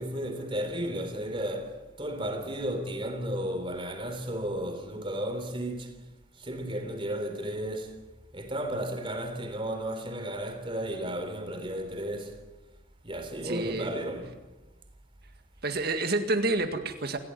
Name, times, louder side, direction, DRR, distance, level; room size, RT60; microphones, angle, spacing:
voice 1, 0.0-5.9 6.4-8.0 8.3-12.4 13.0-14.4, right 1 dB, 25° right, 3.5 m, -33 dB
voice 2, 13.4-14.0 15.6-17.2, right 2 dB, 50° right, 2.0 m, -29 dB
27.0 x 16.5 x 9.8 m
head